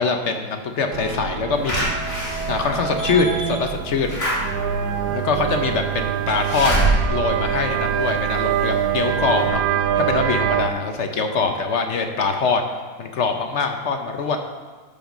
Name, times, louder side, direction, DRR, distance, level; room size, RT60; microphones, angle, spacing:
voice 1, 0.0-2.0 2.5-4.2 5.1-6.8 7.1-9.6 10.0-12.6 13.0-14.4, left 4 dB, 55° left, 5 dB, 0.8 m, -23 dB
sound 1, 0.9-10.7, right 9 dB, 70° right, 1.1 m, -24 dB
Slam / Alarm, 1.7-8.5 8.9-9.0 9.3-9.4, right 1 dB, 20° left, 2.9 m, -26 dB
13.0 x 5.5 x 5.1 m, 1.4 s
omnidirectional pair, 2.1 m